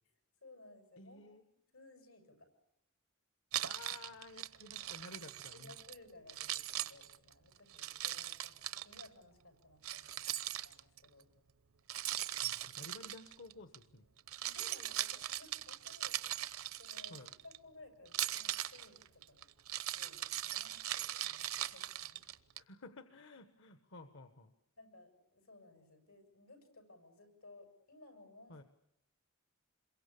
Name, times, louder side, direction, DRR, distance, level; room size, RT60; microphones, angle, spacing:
voice 1, 0.4-1.3 1.7-2.5 5.4-10.2 10.6-11.3 14.4-16.2 16.7-19.5 19.8-22.2 24.8-28.7, left 2 dB, 90° left, 7 dB, 7.1 m, -59 dB
voice 2, 1.0-1.4 3.6-5.8 12.4-14.1 17.1-17.3 22.6-24.5 28.5-28.6, left 3 dB, 65° left, 9 dB, 1.3 m, -53 dB
Keys jangling, 3.5-6.0 6.3-9.1 9.8-11.0 11.9-13.8 14.2-17.6 18.1-22.6, right 13 dB, 80° right, 1.0 m, -40 dB
27.0 x 23.0 x 8.5 m, 0.78 s
head